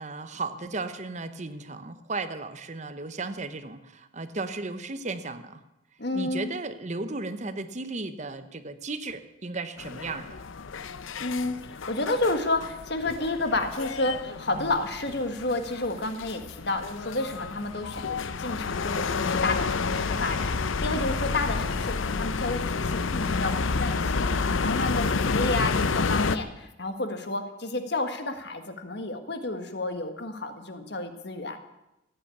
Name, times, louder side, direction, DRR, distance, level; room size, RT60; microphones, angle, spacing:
voice 1, 0.0-5.6 6.1-10.4, right 3 dB, 35° right, 11 dB, 0.9 m, -35 dB
voice 2, 6.0-6.5 11.2-24.3 24.6-31.6, left 2 dB, 55° left, 7 dB, 1.6 m, -31 dB
sound 1, 9.8-26.4, left 4 dB, 85° left, 0.7 m, -29 dB
15.5 x 9.2 x 8.5 m, 0.93 s
head